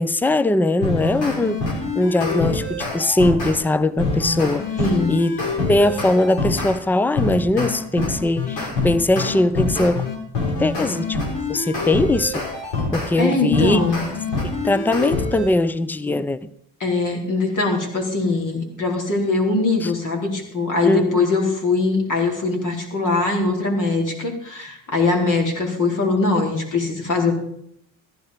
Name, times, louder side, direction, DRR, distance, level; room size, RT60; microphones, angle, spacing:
voice 1, 0.0-1.6 2.0-4.7 5.1-5.3 5.7-10.0 10.6-11.2 11.5-12.4 12.9-13.8 14.6-16.4 19.8-19.9 20.8-21.3, left 2 dB, 5° left, 0.6 m, -20 dB
sound 1, 0.8-3.6 4.0-6.7 7.2-13.1 13.5-15.5, left 3 dB, 75° left, 6.3 m, -25 dB
voice 2, 4.8-5.2 13.2-14.0 16.8-27.3, left 3 dB, 40° left, 4.5 m, -21 dB
15.0 x 11.0 x 5.2 m
supercardioid pair, 90°, 45 cm